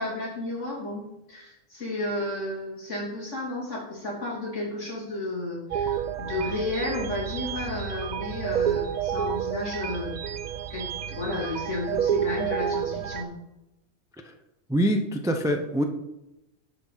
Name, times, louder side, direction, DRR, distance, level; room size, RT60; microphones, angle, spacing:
voice 1, 0.0-10.2 10.7-13.3, left 2 dB, 65° left, -4 dB, 3.2 m, -32 dB
sound 1, 5.7-13.2, right 8 dB, 70° right, 0.4 m, -30 dB
voice 2, 14.7-15.8, equal, 5° right, 4 dB, 0.4 m, -24 dB
10.0 x 6.4 x 4.0 m, 0.94 s
omnidirectional pair, 1.3 m